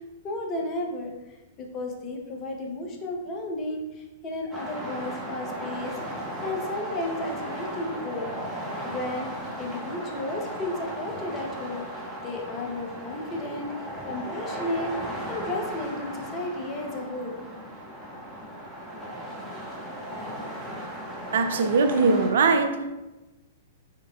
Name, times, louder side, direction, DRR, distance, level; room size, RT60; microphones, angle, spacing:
voice 1, 0.2-1.1 1.6-8.3 8.8-9.3 9.6-11.8 12.2-13.7 14.1-14.9 15.3-17.4, left 1 dB, 30° left, 1 dB, 0.9 m, -33 dB
sound 1, 4.5-22.3, equal, 5° right, 1.2 m, -36 dB
voice 2, 21.3-22.9, right 4 dB, 60° right, 7 dB, 0.4 m, -21 dB
4.9 x 4.6 x 2.3 m, 1.1 s
figure-of-eight pair, 105°, 0 cm